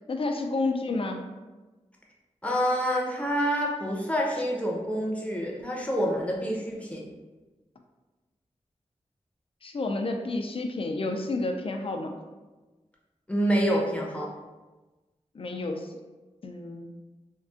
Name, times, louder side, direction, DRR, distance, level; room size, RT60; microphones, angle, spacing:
voice 1, 0.1-1.2 9.6-12.1 15.3-15.9 16.4-16.9, left 2 dB, 50° left, 4 dB, 0.4 m, -30 dB
voice 2, 2.4-7.0 13.3-14.3, equal, 10° left, -2 dB, 0.7 m, -27 dB
3.5 x 2.3 x 2.5 m, 1.2 s
wide cardioid pair, 60°, 12 cm